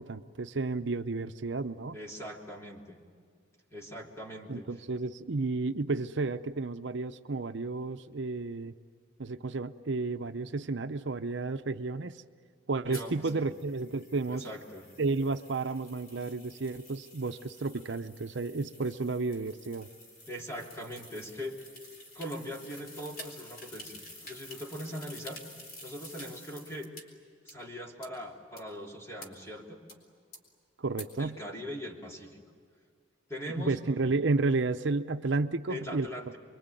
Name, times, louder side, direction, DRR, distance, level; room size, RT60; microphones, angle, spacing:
voice 1, 0.0-2.0 4.5-8.7 9.2-12.2 12.7-14.5 15.0-19.9 30.8-31.4 33.5-36.1, right 3 dB, 70° right, 8 dB, 0.7 m, -32 dB
voice 2, 1.9-3.0 3.7-4.7 12.8-13.4 14.3-14.9 20.3-21.6 22.1-25.4 25.8-26.9 27.4-29.8 31.2-32.4 33.3-33.8 35.7-36.4, equal, 15° left, -1 dB, 3.1 m, -41 dB
sound 1, 12.9-27.0 27.5-27.6 28.0-28.1 28.6-28.7 29.2-29.3 29.9-30.0 30.3-30.4 31.0-31.1, left 1 dB, 50° left, 4.1 m, -50 dB
26.5 x 23.5 x 9.1 m, 2.1 s
head